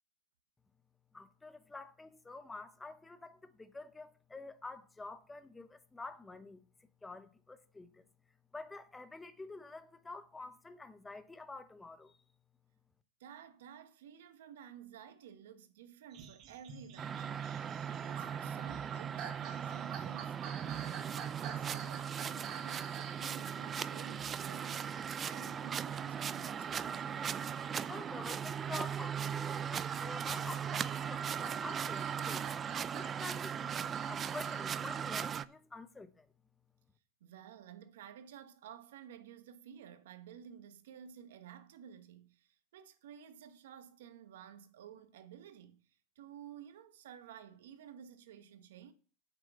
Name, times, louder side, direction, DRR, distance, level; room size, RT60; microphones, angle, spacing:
voice 1, 1.1-6.6 7.0-8.0 8.5-12.2 27.9-32.4 32.9-36.3, left 3 dB, 15° left, 0.9 m, -48 dB
voice 2, 13.2-21.2 21.4-27.1 37.2-48.9, right 9 dB, 75° right, 1.2 m, -53 dB
sound 1, 16.1-28.5 29.1-34.7 35.2-35.3, right 8 dB, 50° right, 1.6 m, -50 dB
sound 2, 17.0-35.4, right 8 dB, 30° right, 0.5 m, -38 dB
8.6 x 6.3 x 5.5 m
hypercardioid pair, 90°, 0 cm